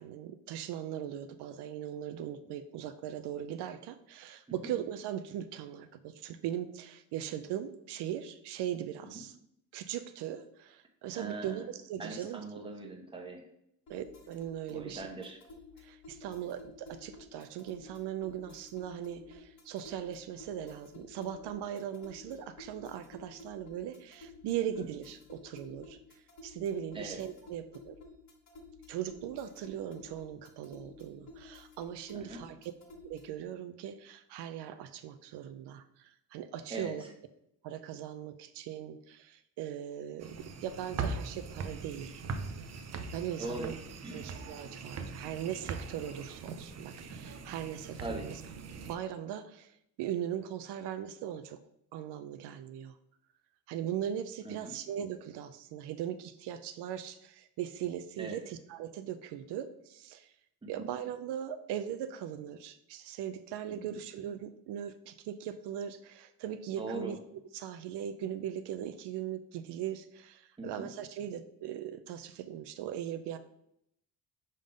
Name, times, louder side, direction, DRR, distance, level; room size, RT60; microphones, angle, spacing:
voice 1, 0.0-9.4 9.7-12.4 13.9-15.1 15.8-26.0 26.4-28.0 28.9-32.7 33.0-37.0 37.6-42.2 43.1-43.7 44.1-48.4 48.9-51.6 51.9-53.0 53.7-60.3 60.7-67.2 67.5-73.4, right 10 dB, 80° right, 10 dB, 0.6 m, -39 dB
voice 2, 11.1-11.7 12.0-13.5 14.7-15.4 24.8-24.9 26.9-27.2 32.1-32.4 36.7-37.1 43.4-43.7 44.0-44.3 48.0-48.3 54.4-54.7 58.2-58.4 60.6-60.9 63.8-63.9 66.8-67.1 70.6-70.9, right 2 dB, 15° right, 1 dB, 1.1 m, -41 dB
sound 1, 13.9-33.4, left 3 dB, 45° left, 1.3 m, -53 dB
sound 2, 40.2-49.0, right 4 dB, 40° right, 0.6 m, -41 dB
5.4 x 3.7 x 5.1 m, 0.76 s
cardioid pair, 130°, 40 cm